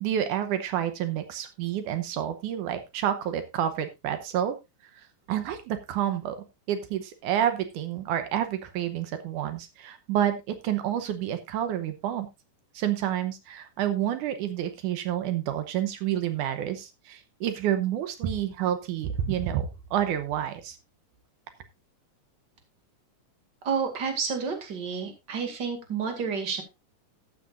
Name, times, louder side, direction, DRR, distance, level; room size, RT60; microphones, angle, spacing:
voice 1, 0.0-4.6 5.0-6.4 6.7-12.3 12.7-20.8, right 10 dB, 85° right, 9 dB, 2.4 m, -29 dB
voice 2, 23.6-26.6, right 6 dB, 35° right, 5 dB, 2.6 m, -30 dB
13.5 x 10.0 x 2.5 m, 0.23 s
omnidirectional pair, 3.5 m